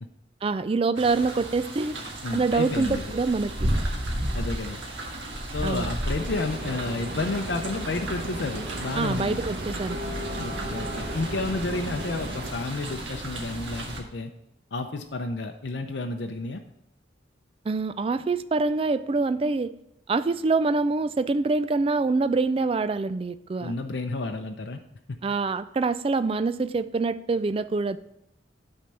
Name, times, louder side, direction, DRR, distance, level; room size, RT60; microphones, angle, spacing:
voice 1, 0.4-2.0 2.3-3.7 5.6-5.9 9.0-10.0 17.7-19.7 20.1-23.7 25.2-28.0, right 3 dB, 30° right, 14 dB, 0.3 m, -25 dB
sound 1, 0.9-14.0, right 1 dB, 85° right, 1.7 m, -33 dB
voice 2, 2.2-3.0 4.3-4.8 5.5-9.4 10.4-14.3 14.7-16.6 23.6-24.8 25.1-25.2, left 3 dB, 65° left, 4 dB, 0.6 m, -31 dB
sound 2, 6.2-12.5, right 1 dB, 50° right, 1.3 m, -36 dB
8.8 x 4.4 x 6.3 m, 0.80 s
head